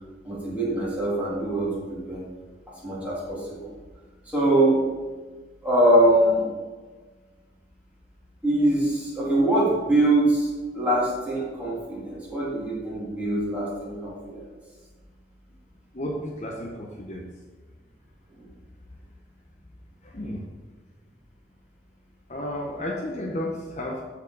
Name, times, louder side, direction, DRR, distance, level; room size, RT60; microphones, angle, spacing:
voice 1, 0.2-2.2 2.8-3.7 4.2-4.8 5.6-6.5 8.4-14.4 18.4-18.5, right 1 dB, 10° right, -7 dB, 3.0 m, -23 dB
voice 2, 15.9-17.3 20.0-20.5 22.3-24.0, left 1 dB, 40° left, 0 dB, 0.9 m, -32 dB
14.0 x 4.7 x 4.0 m, 1.3 s
head